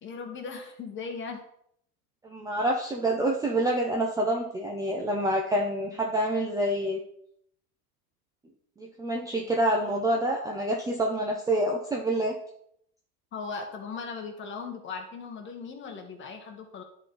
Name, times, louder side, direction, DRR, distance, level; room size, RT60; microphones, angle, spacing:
voice 1, 0.0-1.4 13.3-16.8, left 5 dB, 25° left, 4 dB, 1.4 m, -38 dB
voice 2, 2.2-7.0 8.8-12.3, right 1 dB, 10° right, 0 dB, 0.6 m, -27 dB
10.5 x 4.1 x 3.9 m, 0.70 s
supercardioid pair, 125°, 45 cm